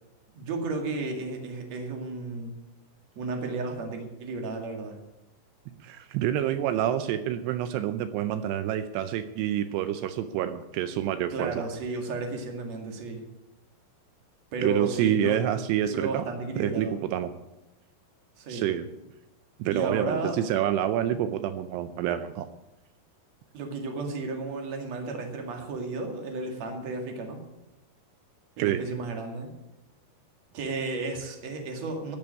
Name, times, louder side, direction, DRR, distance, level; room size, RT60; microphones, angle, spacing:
voice 1, 0.4-2.6 3.2-5.0 11.3-13.2 14.5-15.4 15.8-17.0 18.4-18.7 19.7-20.4 23.5-27.4 28.6-29.5 30.5-32.2, right 3 dB, 45° right, 3 dB, 2.9 m, -33 dB
voice 2, 5.8-11.6 14.6-16.3 16.6-17.3 18.5-18.9 19.6-22.5 28.6-28.8, right 11 dB, 85° right, 10 dB, 2.8 m, -27 dB
14.0 x 7.2 x 9.7 m, 0.96 s
omnidirectional pair, 4.8 m